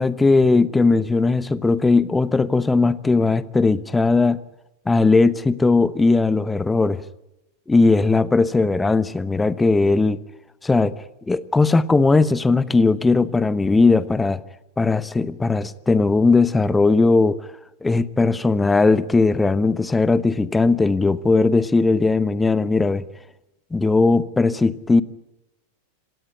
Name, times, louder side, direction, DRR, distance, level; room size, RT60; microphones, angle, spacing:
voice 1, 0.0-4.4 4.9-7.0 7.7-10.2 10.6-10.9 11.3-14.4 14.8-17.4 17.8-23.0 23.7-25.0, left 3 dB, 10° left, 17 dB, 1.0 m, -18 dB
26.5 x 17.0 x 10.0 m, 0.92 s
figure-of-eight pair, 90°, 0 cm